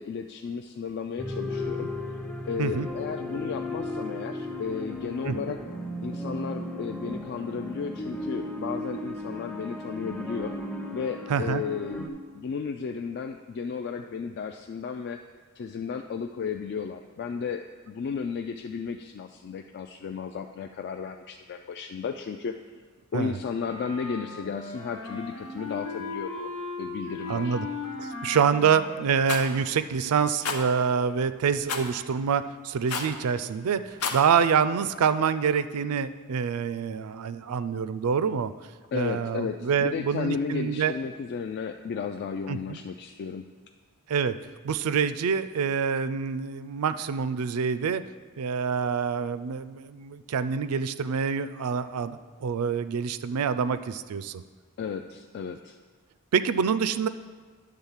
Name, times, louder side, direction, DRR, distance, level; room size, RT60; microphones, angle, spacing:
voice 1, 0.0-1.9 2.5-5.6 6.0-10.5 10.9-12.1 12.3-15.2 15.6-22.5 23.1-26.5 26.8-27.6 38.9-43.4 54.8-55.8, left 6 dB, 50° left, 5 dB, 0.3 m, -34 dB
sound 1, 1.2-12.1, left 1 dB, 5° left, 0.6 m, -35 dB
voice 2, 11.3-11.6 23.1-23.4 27.3-27.7 28.0-38.5 38.9-40.9 42.5-42.8 44.1-44.4 44.6-48.0 48.4-54.4 56.3-57.1, right 6 dB, 80° right, 14 dB, 0.4 m, -26 dB
Wind instrument woodwind instrument, 23.6-29.5, left 3 dB, 90° left, 1.6 m, -37 dB
Rattle, 29.3-29.5 30.4-30.6 31.7-31.9 32.9-33.2 33.9-34.2, left 5 dB, 75° left, 0.8 m, -30 dB
9.8 x 3.6 x 7.2 m, 1.5 s
head